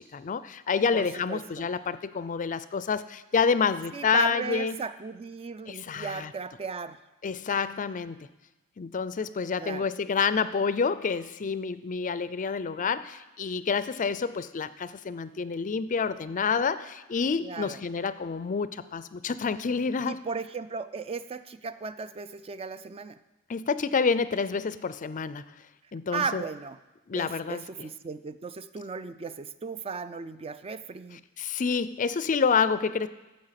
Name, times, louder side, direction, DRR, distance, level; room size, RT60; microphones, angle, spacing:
voice 1, 0.0-4.8 5.7-6.3 7.2-8.3 8.8-20.2 23.5-25.4 25.9-26.4 27.1-27.9 31.4-33.1, left 5 dB, 35° left, 15 dB, 0.4 m, -28 dB
voice 2, 0.9-1.7 3.9-7.0 9.6-9.9 17.4-17.8 20.1-23.2 26.1-26.8 27.1-31.2, right 5 dB, 25° right, 13 dB, 0.4 m, -36 dB
14.0 x 7.5 x 5.8 m, 1.0 s
head